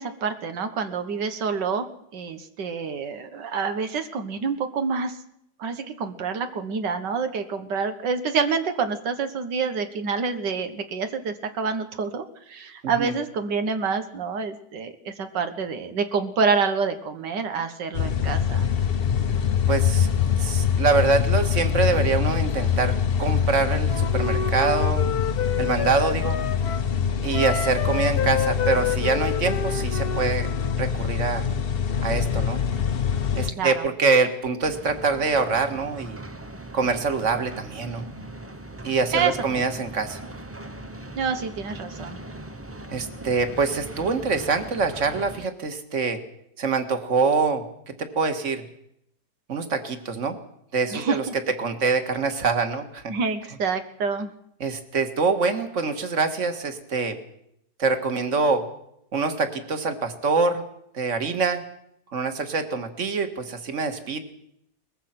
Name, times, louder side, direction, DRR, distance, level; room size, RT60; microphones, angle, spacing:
voice 1, 0.0-1.9 2.1-5.2 5.6-18.7 33.6-33.9 39.1-39.3 41.1-42.2 50.9-51.2 53.1-54.3, right 5 dB, 90° right, 8 dB, 2.0 m, -27 dB
sound 1, 17.9-33.5, left 7 dB, 45° left, 0.9 m, -24 dB
voice 2, 19.7-25.1 25.6-26.4 27.2-30.5 30.8-31.5 32.0-32.6 33.4-36.2 36.7-38.1 38.8-40.2 42.9-46.2 46.6-47.6 48.0-48.6 49.5-50.4 50.7-51.2 51.6-53.1 54.6-57.2 57.8-58.6 59.1-60.6 60.9-61.6 62.1-64.2, right 4 dB, 45° right, 7 dB, 2.1 m, -25 dB
Wind instrument woodwind instrument, 23.9-26.9 27.3-30.8, left 7 dB, 65° left, 1.5 m, -29 dB
sound 2, 34.6-45.5, right 1 dB, 20° right, 0.3 m, -40 dB
22.5 x 20.5 x 6.0 m, 0.76 s
omnidirectional pair, 1.8 m